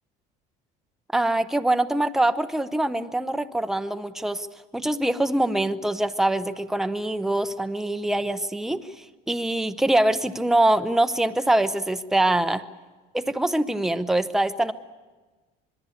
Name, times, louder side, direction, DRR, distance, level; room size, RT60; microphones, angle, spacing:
voice 1, 1.1-4.5 4.7-8.8 9.3-12.6 13.1-14.7, right 1 dB, ahead, 9 dB, 0.7 m, -24 dB
26.0 x 21.0 x 8.4 m, 1.3 s
cardioid pair, 135°, 18 cm